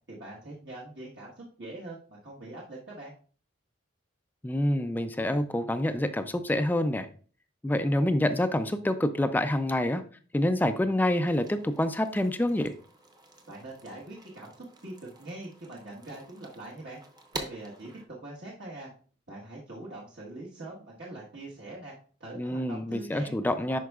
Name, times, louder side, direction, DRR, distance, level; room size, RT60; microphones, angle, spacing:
voice 1, 0.1-3.1 13.5-17.0 17.3-18.9 19.3-21.9 22.2-23.3 23.7-23.8, right 2 dB, 60° right, -6 dB, 1.4 m, -43 dB
voice 2, 4.4-7.1 7.6-10.0 10.3-12.7 22.4-23.8, left 1 dB, 10° left, 10 dB, 0.3 m, -27 dB
sound 1, 11.2-18.1, right 2 dB, 20° right, 0.8 m, -47 dB
11.0 x 4.5 x 2.4 m, 0.42 s
head